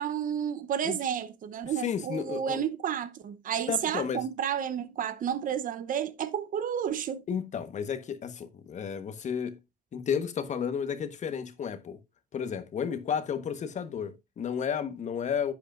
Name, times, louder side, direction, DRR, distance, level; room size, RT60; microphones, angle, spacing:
voice 1, 0.0-7.2, right 9 dB, 55° right, 0.9 m, -31 dB
voice 2, 1.8-2.6 3.7-4.2 7.3-9.6 9.9-12.0 12.3-15.5, left 7 dB, 45° left, 1.3 m, -32 dB
10.5 x 8.4 x 2.5 m
cardioid pair, 110°, 17 cm